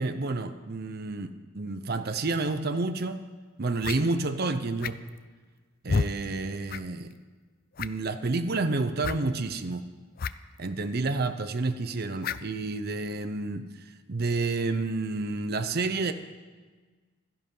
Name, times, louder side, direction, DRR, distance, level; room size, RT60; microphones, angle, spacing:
voice 1, 0.0-3.2 3.6-5.0 5.8-7.1 7.8-9.9 10.6-13.7 14.1-16.1, right 3 dB, 50° right, 9 dB, 0.7 m, -29 dB
sound 1, 3.0-3.1 3.8-4.0 4.8-5.2 5.9-6.1 6.7-6.8 7.1-7.2 7.7-8.1 9.0-9.2 10.2-10.3 10.6-10.7 12.2-12.5, left 5 dB, 45° left, 0.4 m, -30 dB
16.0 x 12.5 x 5.5 m, 1.4 s
head